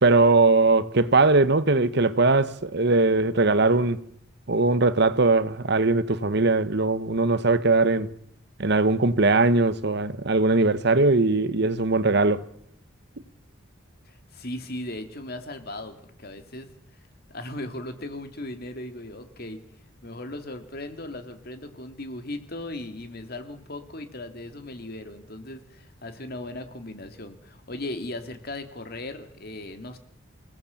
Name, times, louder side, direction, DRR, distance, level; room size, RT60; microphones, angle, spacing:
voice 1, 0.0-4.0 4.5-8.1 8.6-12.4, right 3 dB, 55° right, 1.1 m, -20 dB
voice 2, 14.0-16.7 17.3-19.6 20.0-30.0, left 1 dB, 50° left, 2.6 m, -37 dB
28.0 x 17.5 x 7.2 m
head